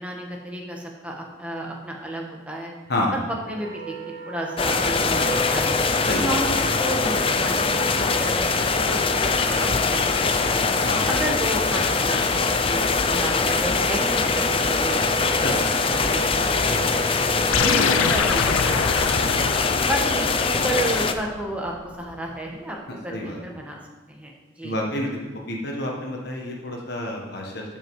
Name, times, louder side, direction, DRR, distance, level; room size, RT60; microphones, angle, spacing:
voice 1, 0.0-2.7 3.5-3.9 4.2-5.8 6.1-9.0 9.4-10.6 11.1-15.1 16.1-17.0 17.5-19.5 19.8-22.8 23.0-23.8 24.1-24.3 24.6-24.7, right 1 dB, 5° right, -1 dB, 1.3 m, -32 dB
Wind instrument woodwind instrument, 3.5-18.3, right 5 dB, 45° right, 1.1 m, -35 dB
sound 1, 4.6-21.1, left 4 dB, 25° left, 0.4 m, -22 dB
sound 2, 17.5-22.2, left 6 dB, 90° left, 0.6 m, -26 dB
voice 2, 22.9-23.4 24.6-25.2 25.5-27.6, left 1 dB, 50° left, -1 dB, 1.4 m, -29 dB
12.5 x 5.4 x 4.8 m, 1.2 s
head